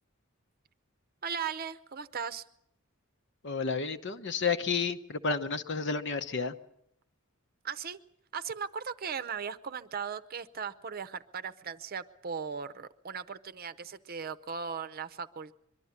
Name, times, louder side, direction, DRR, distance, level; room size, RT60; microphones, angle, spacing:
voice 1, 1.2-2.4 7.6-8.0 8.3-15.5, right 6 dB, 45° right, 11 dB, 0.7 m, -38 dB
voice 2, 3.4-6.5, left 5 dB, 55° left, 9 dB, 1.0 m, -31 dB
23.0 x 12.5 x 9.6 m, 0.76 s
head